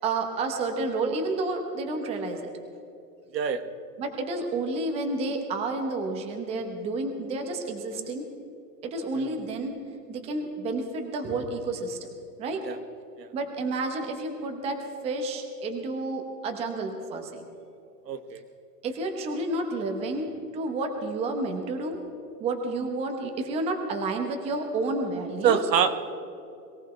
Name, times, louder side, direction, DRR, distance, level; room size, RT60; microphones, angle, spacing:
voice 1, 0.0-2.5 4.0-8.2 8.8-9.7 10.1-12.0 12.4-12.6 13.3-17.4 18.8-22.0 22.4-25.6, right 2 dB, 15° right, 4 dB, 1.0 m, -30 dB
voice 2, 18.0-18.4 25.4-26.0, right 8 dB, 90° right, 7 dB, 1.7 m, -25 dB
22.5 x 17.0 x 3.3 m, 2.7 s
supercardioid pair, 170°, 48 cm